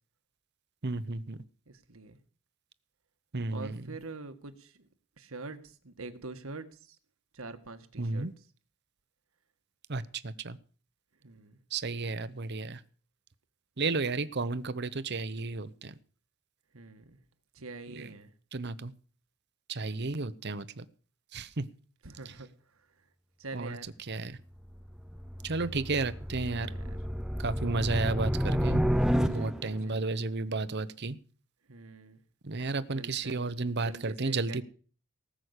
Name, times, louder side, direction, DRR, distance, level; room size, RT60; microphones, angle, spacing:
voice 1, 0.8-1.4 3.3-3.9 8.0-8.3 9.9-10.6 11.7-12.8 13.8-15.9 17.9-18.1 18.5-18.9 19.7-20.8 21.3-21.6 23.5-24.4 25.4-26.7 27.4-28.8 29.3-31.2 32.4-34.6, right 3 dB, 50° right, 15 dB, 0.9 m, -33 dB
voice 2, 1.7-2.2 3.5-4.9 5.2-6.9 7.3-8.3 11.2-11.6 16.7-17.2 17.5-18.3 22.0-22.5 23.4-23.8 26.4-27.0 27.6-27.8 29.1-30.0 31.7-32.2 32.9-33.5 33.8-34.6, right 3 dB, 70° right, 10 dB, 1.6 m, -45 dB
sound 1, 24.6-29.8, equal, 5° right, 0.6 m, -30 dB
18.5 x 6.4 x 8.2 m, 0.42 s
head